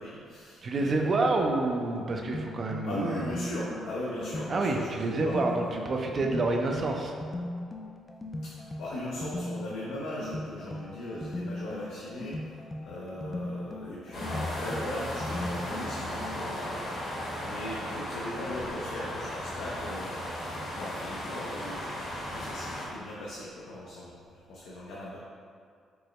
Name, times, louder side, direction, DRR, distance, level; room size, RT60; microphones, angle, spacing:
voice 1, 0.0-1.6 2.8-5.8 8.4-25.2, left 1 dB, 85° left, -6 dB, 0.5 m, -39 dB
voice 2, 0.6-3.3 4.5-7.2, right 2 dB, 45° right, 2 dB, 0.4 m, -28 dB
sound 1, 1.8-16.7, left 1 dB, 25° left, 0.3 m, -39 dB
sound 2, 14.1-22.9, left 1 dB, 70° left, 1.1 m, -36 dB
4.5 x 2.1 x 3.0 m, 2.3 s
cardioid pair, 90°, 0 cm